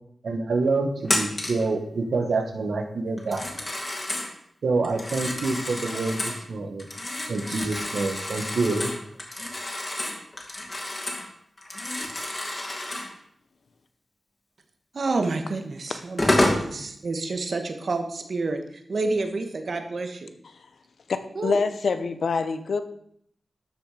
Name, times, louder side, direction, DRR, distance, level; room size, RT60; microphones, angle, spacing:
voice 1, 0.2-3.6 4.6-6.9 7.3-8.9, right 3 dB, 80° right, 6 dB, 1.6 m, -27 dB
Telephone, 1.0-1.7 3.2-4.3 4.8-6.4 6.8-11.3 11.6-13.1 15.2-15.3 15.9-16.7, left 1 dB, 30° left, 2.5 m, -29 dB
voice 2, 14.9-20.3 21.3-21.6, right 3 dB, 60° right, 6 dB, 1.4 m, -29 dB
voice 3, 21.1-22.8, left 4 dB, 80° left, 10 dB, 0.9 m, -25 dB
12.5 x 6.8 x 5.1 m, 0.69 s
wide cardioid pair, 100°, 0 cm